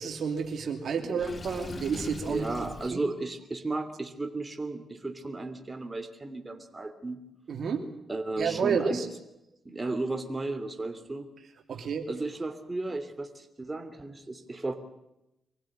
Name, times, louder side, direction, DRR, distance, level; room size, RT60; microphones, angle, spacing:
voice 1, 0.0-2.5 2.9-3.0 7.5-7.9 8.4-9.1 11.7-12.1, right 6 dB, 65° right, 5 dB, 2.7 m, -30 dB
Water / Sink (filling or washing), 1.2-3.0, left 3 dB, 40° left, 1.6 m, -41 dB
voice 2, 2.3-7.2 8.1-9.0 9.6-11.3 12.1-14.7, right 2 dB, 25° right, 7 dB, 3.0 m, -34 dB
24.5 x 16.0 x 9.1 m, 0.88 s
cardioid pair, 60°, 0 cm